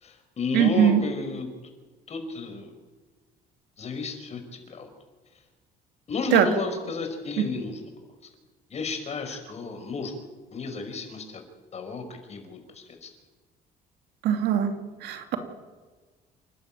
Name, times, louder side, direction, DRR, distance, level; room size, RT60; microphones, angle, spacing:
voice 1, 0.0-1.5 2.1-2.7 3.8-4.9 6.1-7.9 8.7-10.1 10.5-11.4 11.7-13.1, left 4 dB, 40° left, 6 dB, 5.4 m, -32 dB
voice 2, 0.5-1.0 6.3-6.5 7.4-7.5 14.2-14.7 15.0-15.4, right 9 dB, 80° right, 7 dB, 2.8 m, -21 dB
28.0 x 12.5 x 9.0 m, 1.3 s
cardioid pair, 110°, 17 cm